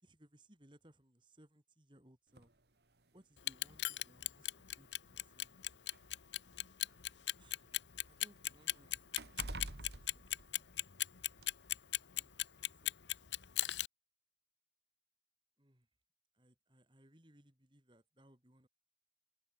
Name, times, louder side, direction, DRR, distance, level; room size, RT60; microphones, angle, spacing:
voice 1, 0.0-2.5 3.1-5.5 7.4-7.7 8.1-10.8 12.1-13.7 15.6-15.9 16.3-18.7, right 1 dB, 25° right, 3.3 m, -66 dB
sound 1, 2.4-2.5 3.6-3.7 4.1-4.3 5.2-7.2 7.6-11.0 11.4-11.5, right 2 dB, 70° right, 2.3 m, -49 dB
Clock, 3.4-13.9, left 14 dB, 85° left, 1.1 m, -37 dB
head